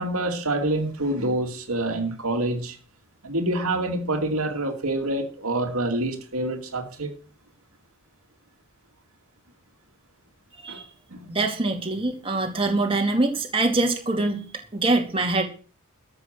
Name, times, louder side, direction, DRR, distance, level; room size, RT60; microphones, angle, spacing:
voice 1, 0.0-2.8 3.2-7.1 10.7-10.8 11.1-11.3, right 1 dB, 75° right, 2.5 m, -26 dB
voice 2, 11.3-14.4 14.7-15.4, right 2 dB, 25° right, 2.5 m, -24 dB
13.0 x 7.9 x 7.7 m
head